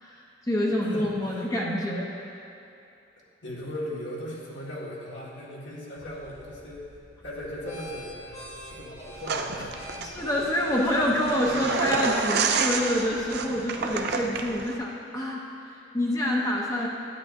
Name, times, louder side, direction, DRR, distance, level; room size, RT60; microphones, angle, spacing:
voice 1, 0.0-2.3 10.0-15.5 15.9-16.9, left 1 dB, 20° left, -3 dB, 0.7 m, -27 dB
voice 2, 0.8-1.5 3.4-10.1, equal, 85° left, -6 dB, 1.9 m, -38 dB
sound 1, 6.0-14.8, equal, 40° left, 1.1 m, -46 dB
sound 2, 9.2-14.8, right 5 dB, 60° right, 0.5 m, -30 dB
10.5 x 9.0 x 2.6 m, 2.8 s
head